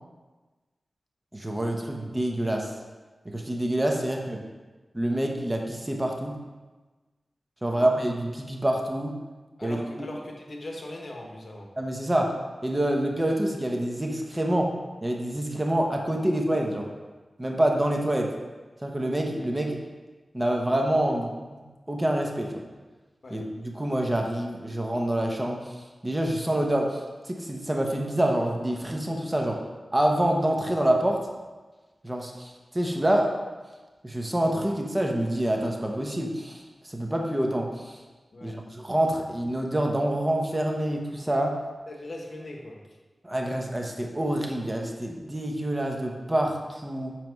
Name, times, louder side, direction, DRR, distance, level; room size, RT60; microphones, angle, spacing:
voice 1, 1.3-2.7 3.2-4.4 4.9-6.4 7.6-9.2 9.6-10.1 11.8-12.3 12.6-14.7 15.0-16.9 17.4-18.3 18.8-19.8 20.3-21.6 21.9-22.5 23.3-25.7 26.0-29.6 29.9-31.2 32.0-33.3 34.0-36.6 36.9-38.0 38.4-41.6 43.2-47.2, right 1 dB, 20° right, 1 dB, 1.0 m, -27 dB
voice 2, 9.6-11.7 23.2-23.5 38.3-38.6 41.9-42.8, left 1 dB, 60° left, 0 dB, 1.2 m, -40 dB
7.4 x 4.6 x 4.6 m, 1.3 s
wide cardioid pair, 65°, 0 cm